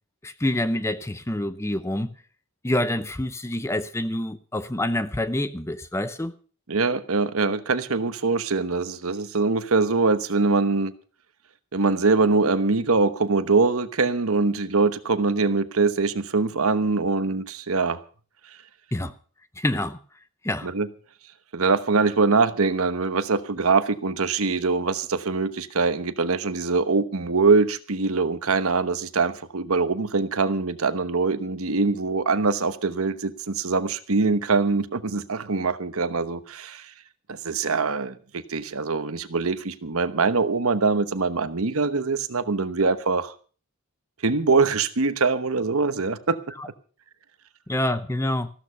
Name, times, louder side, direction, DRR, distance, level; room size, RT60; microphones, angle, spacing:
voice 1, 0.2-2.1 2.6-6.4 18.9-19.1 19.6-20.0 20.4-20.7 46.6-46.7 47.7-48.5, left 1 dB, 10° left, 0.7 m, -27 dB
voice 2, 6.7-10.9 11.7-18.0 20.6-20.9 21.5-36.9 37.3-43.3 44.2-46.4, right 4 dB, 75° right, 1.1 m, -23 dB
14.5 x 13.0 x 5.6 m
head